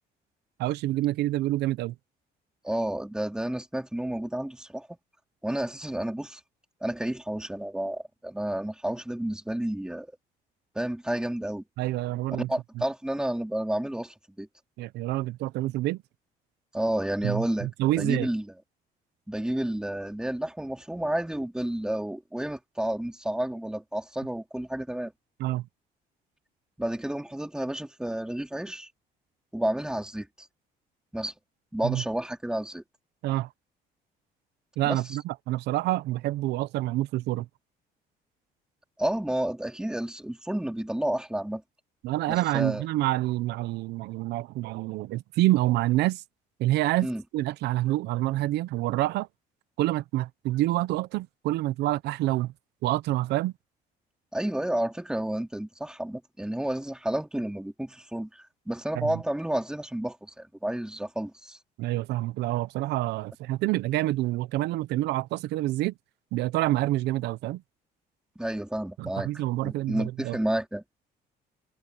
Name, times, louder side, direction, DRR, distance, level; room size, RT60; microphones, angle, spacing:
voice 1, 0.6-1.9 11.8-12.5 14.8-16.0 17.2-18.3 25.4-25.7 31.8-32.0 33.2-33.5 34.8-37.5 42.0-46.2 46.6-47.1 47.3-49.3 49.8-52.5 52.8-53.5 58.9-59.2 61.8-65.9 66.3-67.6 69.0-70.4, right 16 dB, 80° right, 0.8 m, -27 dB
voice 2, 2.6-5.0 5.4-6.4 6.8-10.1 10.8-11.6 12.3-14.5 16.7-17.7 18.0-18.5 19.3-25.1 26.8-28.9 29.5-30.5 31.1-31.3 31.7-32.8 34.8-35.0 39.0-41.6 42.3-42.8 47.0-47.2 54.3-61.6 68.4-69.3 69.6-70.8, right 1 dB, 5° right, 3.5 m, -31 dB
cardioid pair, 110°, 17 cm